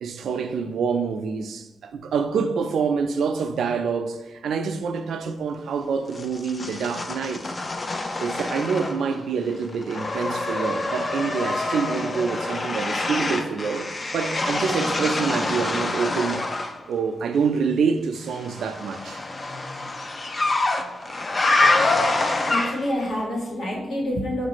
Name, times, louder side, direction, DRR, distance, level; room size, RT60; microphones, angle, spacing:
voice 1, 0.0-7.5 8.2-16.4 16.9-19.2, right 5 dB, 80° right, 0.4 m, -26 dB
sound 1, 6.1-9.2 9.5-16.8 18.3-23.0, left 2 dB, 25° left, 0.3 m, -26 dB
voice 2, 22.5-24.5, left 1 dB, 60° left, 1.3 m, -27 dB
6.1 x 2.5 x 2.9 m
wide cardioid pair, 170°, 0 cm